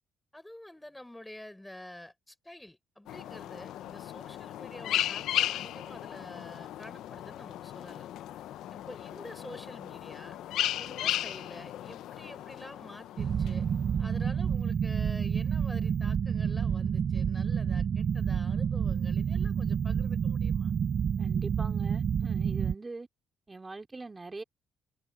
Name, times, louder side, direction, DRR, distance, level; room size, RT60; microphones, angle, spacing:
voice 1, 0.3-8.1 8.7-10.4 10.8-13.7 14.0-20.7, left 1 dB, 10° left, 4.2 m, -48 dB
sound 1, 3.1-14.0, left 12 dB, 85° left, 0.7 m, -36 dB
sound 2, 13.2-22.8, right 7 dB, 55° right, 0.3 m, -29 dB
voice 2, 21.2-23.1 23.5-24.4, right 3 dB, 20° right, 3.1 m, -43 dB
cardioid pair, 90°, 0 cm